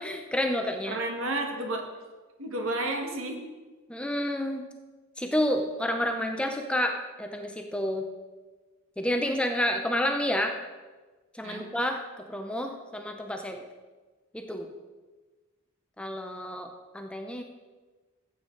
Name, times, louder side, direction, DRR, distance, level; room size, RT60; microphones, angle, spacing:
voice 1, 0.0-1.0 3.9-4.7 5.2-8.1 9.0-10.6 11.3-13.7 14.3-14.7 16.0-17.4, left 1 dB, 5° left, 4 dB, 0.6 m, -30 dB
voice 2, 0.8-1.9 2.4-3.4 11.4-11.7, right 2 dB, 60° right, 3 dB, 1.7 m, -31 dB
14.5 x 8.1 x 3.9 m, 1.3 s
head